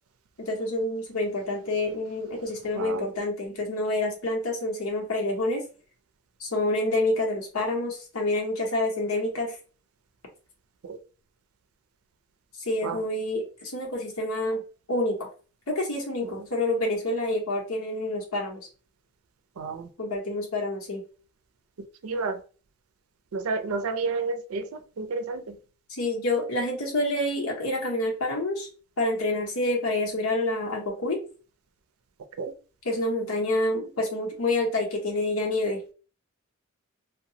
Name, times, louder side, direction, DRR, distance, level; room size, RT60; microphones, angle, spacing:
voice 1, 0.4-5.6 6.4-9.6 12.6-14.6 14.9-15.3 15.7-18.6 20.0-21.0 26.0-28.7 29.0-31.2 32.8-35.8, left 2 dB, 85° left, 1.0 m, -28 dB
voice 2, 2.7-3.1 10.8-11.0 12.8-13.0 16.2-16.5 19.6-19.9 22.0-22.4 23.3-25.6 32.4-32.5, right 4 dB, 85° right, 0.4 m, -31 dB
2.8 x 2.2 x 2.7 m
head